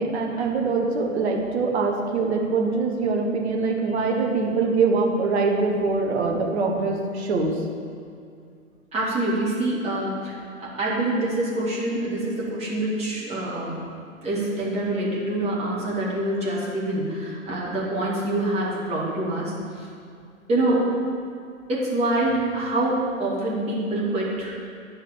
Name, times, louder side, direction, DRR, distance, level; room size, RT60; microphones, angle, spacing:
voice 1, 0.0-7.6, right 4 dB, 55° right, 0 dB, 1.6 m, -23 dB
voice 2, 8.9-13.8 14.2-19.9 20.5-20.9 21.7-24.6, right 1 dB, 15° right, -6 dB, 2.3 m, -25 dB
9.9 x 5.6 x 7.0 m, 2.4 s
figure-of-eight pair, 110°, 41 cm